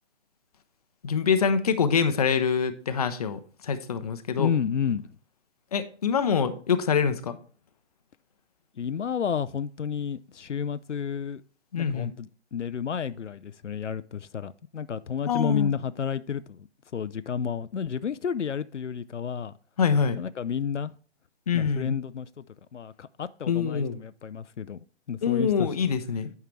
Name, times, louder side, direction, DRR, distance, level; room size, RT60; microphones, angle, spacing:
voice 1, 1.0-4.5 5.7-7.4 11.7-12.1 15.3-15.7 19.8-20.2 21.5-21.9 23.5-24.0 25.2-26.3, left 6 dB, 35° left, 0.6 m, -25 dB
voice 2, 4.4-5.0 8.8-11.4 11.8-16.7 16.9-19.5 20.2-20.9 21.5-22.4 22.7-25.7, left 7 dB, 85° left, 0.5 m, -31 dB
9.4 x 5.6 x 3.1 m
figure-of-eight pair, 140°, 35 cm